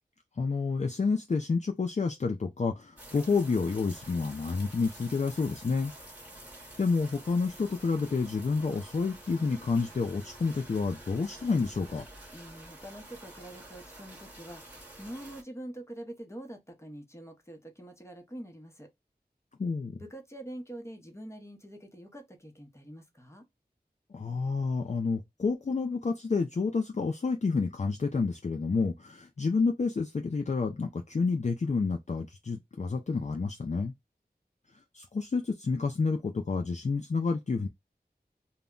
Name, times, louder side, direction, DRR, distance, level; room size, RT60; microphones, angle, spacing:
voice 1, 0.4-5.9 6.8-12.1 19.6-20.0 24.1-33.9 34.9-37.7, left 4 dB, 45° left, 0.4 m, -29 dB
sound 1, 3.0-15.4, right 1 dB, 10° right, 1.1 m, -49 dB
voice 2, 12.3-18.9 20.0-23.5, right 1 dB, 15° left, 0.8 m, -45 dB
2.1 x 2.1 x 3.6 m
wide cardioid pair, 45°, 17 cm